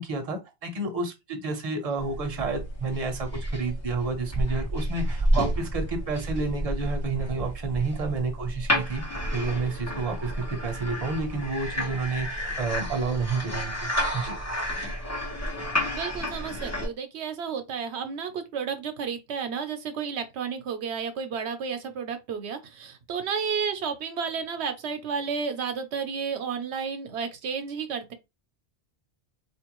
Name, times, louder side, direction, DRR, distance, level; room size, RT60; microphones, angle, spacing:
voice 1, 0.0-9.0 9.3-14.4, right 3 dB, 40° right, 0.8 m, -30 dB
sound 1, 2.0-16.9, equal, 15° left, 0.9 m, -30 dB
voice 2, 15.9-28.1, right 6 dB, 80° right, 0.9 m, -32 dB
4.2 x 2.5 x 2.9 m
omnidirectional pair, 1.1 m